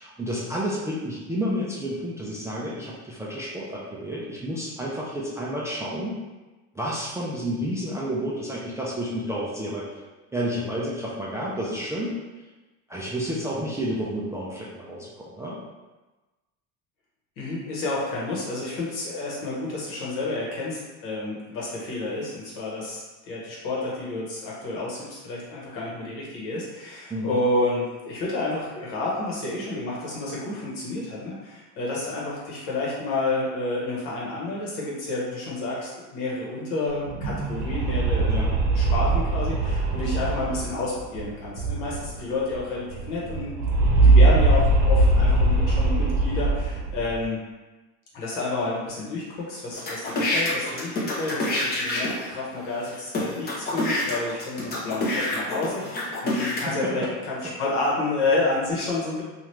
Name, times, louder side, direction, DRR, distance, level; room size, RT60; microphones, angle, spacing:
voice 1, 0.0-6.2 6.7-10.0 10.3-12.1 12.9-15.6 27.1-27.4 38.3-38.5 56.7-57.1, equal, 10° right, -6 dB, 0.3 m, -30 dB
voice 2, 17.4-43.6 44.0-47.4 48.1-59.2, left 2 dB, 70° left, -5 dB, 1.2 m, -30 dB
sound 1, 36.9-42.3 42.5-42.6 42.9-47.2, right 2 dB, 85° right, 0.8 m, -21 dB
sound 2, 49.7-52.3 52.9-53.0 53.1-56.6, left 1 dB, 30° left, 0.7 m, -27 dB
2.8 x 2.4 x 3.2 m, 1.2 s
cardioid pair, 125°, 34 cm